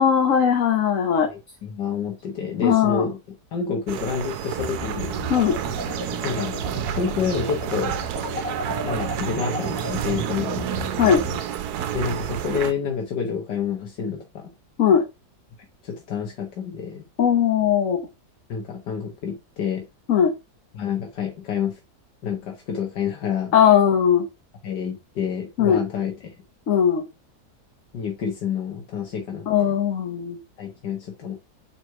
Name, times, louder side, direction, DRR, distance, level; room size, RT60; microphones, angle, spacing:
voice 1, 0.0-1.3 2.6-3.0 5.3-5.5 11.0-11.2 14.8-15.0 17.2-18.0 20.1-20.3 23.5-24.3 25.6-25.8 26.7-27.0 29.5-30.4, left 8 dB, 55° left, 4 dB, 1.3 m, -18 dB
voice 2, 1.3-3.2 3.5-5.3 6.2-6.6 6.9-8.0 8.8-10.7 11.9-14.5 15.8-17.0 18.5-19.8 20.7-21.8 22.2-23.5 24.6-26.1 27.9-29.7 30.6-31.3, left 6 dB, 90° left, 0 dB, 1.9 m, -28 dB
sound 1, 3.9-12.7, right 10 dB, 70° right, 1.2 m, -29 dB
sound 2, 4.6-11.4, left 2 dB, 35° left, 2.8 m, -34 dB
4.7 x 4.3 x 5.6 m, 0.25 s
omnidirectional pair, 1.8 m